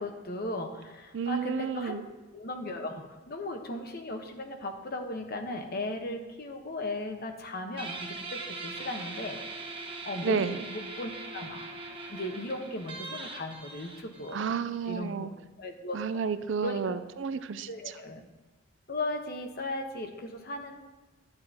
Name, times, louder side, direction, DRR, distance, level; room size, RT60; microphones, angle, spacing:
voice 1, 0.0-2.0 2.3-9.4 10.0-11.7 12.1-14.4 14.9-15.3 15.6-16.2 16.6-17.1 17.7-18.2 18.9-20.8, left 2 dB, 50° left, 4 dB, 1.0 m, -37 dB
voice 2, 1.1-2.0 10.2-10.6 14.3-15.3 15.9-17.7, right 6 dB, 65° right, 13 dB, 0.4 m, -31 dB
Guitar, 7.8-15.0, right 3 dB, 25° right, 1.2 m, -41 dB
12.0 x 9.7 x 2.8 m, 1.1 s
head